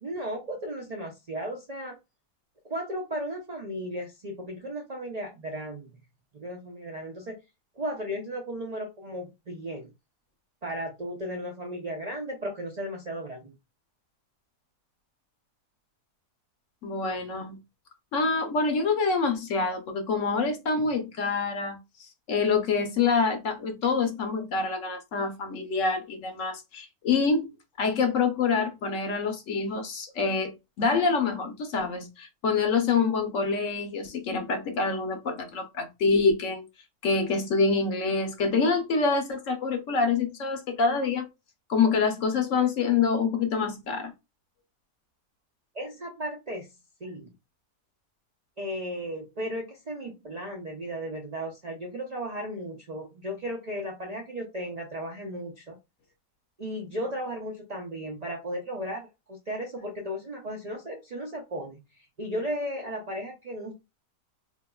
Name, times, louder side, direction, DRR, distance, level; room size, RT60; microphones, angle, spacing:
voice 1, 0.0-2.0 2.6-5.9 6.3-7.4 7.8-9.9 10.6-13.5 45.7-46.7 47.0-47.3 48.6-55.8 56.6-63.7, equal, 75° right, 0.3 m, -35 dB
voice 2, 16.8-17.6 18.1-21.8 22.3-27.5 27.8-36.6 37.0-41.3 41.7-44.1, left 4 dB, 60° left, 0.9 m, -26 dB
3.8 x 2.8 x 2.2 m
omnidirectional pair, 1.7 m